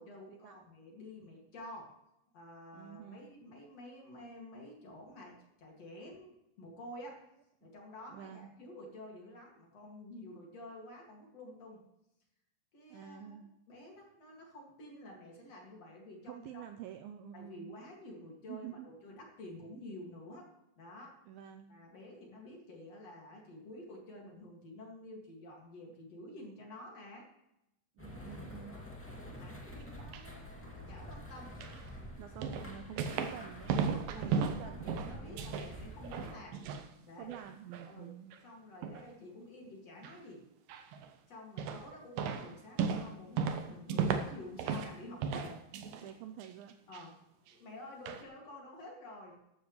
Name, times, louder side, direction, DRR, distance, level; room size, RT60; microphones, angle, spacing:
voice 1, 0.0-1.9 2.3-7.2 7.6-11.8 12.7-16.6 17.3-20.5 20.8-21.2 21.7-27.3 28.2-31.6 32.4-32.5 33.9-36.6 37.0-37.3 37.9-38.1 38.4-40.4 41.3-45.6 46.9-47.2 47.5-49.4, left 1 dB, 45° left, -1 dB, 2.9 m, -50 dB
voice 2, 2.7-3.3 7.6-7.7 8.1-8.5 12.9-13.5 16.3-17.8 18.5-18.9 21.3-21.8 28.0-28.9 32.2-36.0 37.2-38.4 45.9-46.8, right 10 dB, 90° right, 7 dB, 2.1 m, -48 dB
sound 1, 28.0-36.3, equal, 15° left, 0.5 m, -47 dB
sound 2, 29.8-30.3 31.6-31.8 32.4-33.4 33.7-35.7 36.0-36.9 37.2-37.9 38.3-38.4 38.8-39.1 40.0-40.2 40.7-41.1 41.6-41.9 42.2-45.0 45.2-46.1 46.4-47.0 47.5-47.6 48.1-48.2, right 6 dB, 70° right, 2.2 m, -35 dB
14.0 x 12.0 x 3.2 m, 0.85 s
omnidirectional pair, 4.9 m